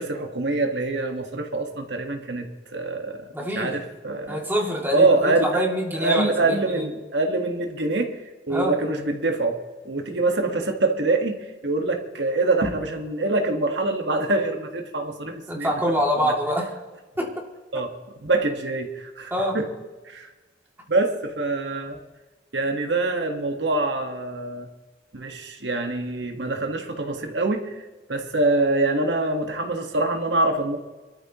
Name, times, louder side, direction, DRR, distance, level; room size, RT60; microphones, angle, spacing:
voice 1, 0.0-2.5 2.7-3.2 3.5-4.4 4.9-5.6 6.0-8.1 8.5-11.4 11.6-15.7 16.2-16.3 17.7-17.9 18.2-19.7 20.1-20.3 20.9-22.0 22.5-24.7 25.1-27.7 28.1-30.8, right 2 dB, 75° right, 4 dB, 1.6 m, -24 dB
voice 2, 3.3-3.7 4.3-6.9 8.5-8.8 15.5-16.7 17.2-17.3 19.3-19.6, equal, 10° right, -1 dB, 2.6 m, -25 dB
25.0 x 13.5 x 3.1 m, 1.2 s
head